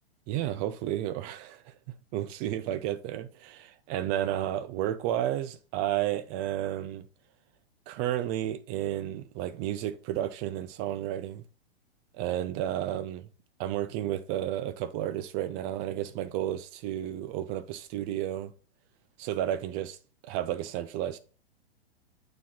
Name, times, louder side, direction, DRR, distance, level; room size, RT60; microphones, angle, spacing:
voice 1, 0.3-7.1 7.9-11.4 12.1-13.3 13.6-18.5 19.2-20.0 20.2-21.2, right 12 dB, 20° right, 0.3 m, -32 dB
9.0 x 4.2 x 4.3 m
figure-of-eight pair, 105°, 32 cm